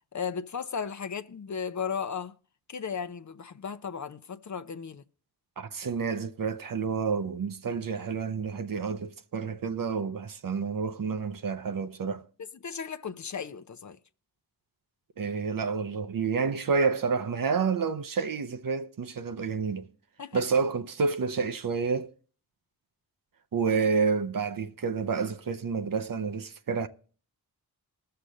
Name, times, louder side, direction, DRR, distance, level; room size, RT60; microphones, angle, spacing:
voice 1, 0.1-2.3 2.7-5.0 12.6-14.0 20.2-20.4, left 6 dB, 45° left, 0.7 m, -35 dB
voice 2, 5.6-12.2 15.2-19.9 20.3-22.1 23.5-26.9, right 5 dB, 55° right, 0.8 m, -29 dB
20.0 x 6.8 x 3.9 m
cardioid pair, 60°, 39 cm